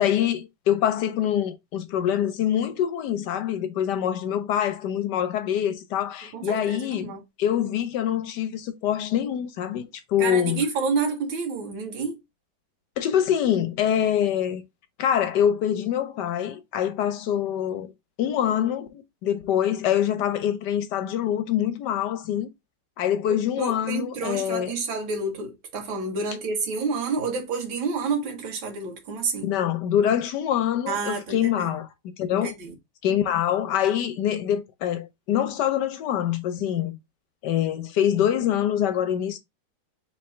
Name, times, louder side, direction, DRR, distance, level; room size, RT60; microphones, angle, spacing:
voice 1, 0.0-10.6 13.0-14.6 15.0-17.9 18.2-22.5 23.0-24.7 29.4-31.9 32.2-32.5 33.0-37.0 37.4-39.4, left 10 dB, 70° left, 1.2 m, -25 dB
voice 2, 6.3-7.2 10.2-12.2 23.6-29.5 30.9-31.7 32.4-32.7 33.1-33.2, right 4 dB, 90° right, 1.9 m, -29 dB
3.6 x 3.4 x 4.2 m
omnidirectional pair, 2.1 m